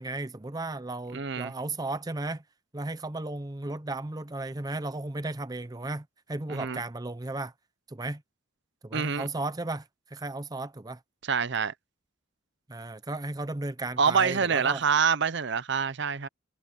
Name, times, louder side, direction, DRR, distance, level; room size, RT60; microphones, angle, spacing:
voice 1, 0.0-2.4 2.7-7.5 7.9-8.2 8.8-9.8 10.1-11.0 12.7-14.8, right 2 dB, 20° right, 0.6 m, -35 dB
voice 2, 1.1-1.5 6.5-6.8 8.9-9.3 11.3-11.7 14.0-16.3, right 6 dB, 60° right, 0.7 m, -26 dB
head